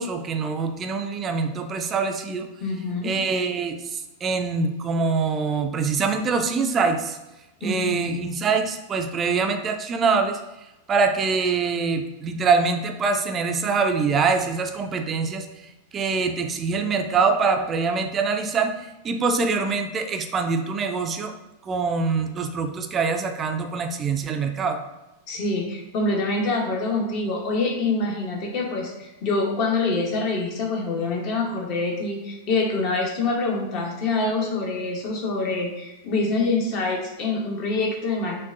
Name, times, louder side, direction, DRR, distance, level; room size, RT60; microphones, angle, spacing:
voice 1, 0.0-2.5 3.0-7.2 7.6-10.4 10.9-15.5 15.9-18.7 19.0-21.3 21.7-24.8, right 4 dB, 25° right, 6 dB, 0.4 m, -24 dB
voice 2, 2.6-3.1 7.6-8.0 25.3-38.4, left 3 dB, 40° left, 0 dB, 1.0 m, -25 dB
6.0 x 2.3 x 2.5 m, 0.99 s
figure-of-eight pair, 90°, 0 cm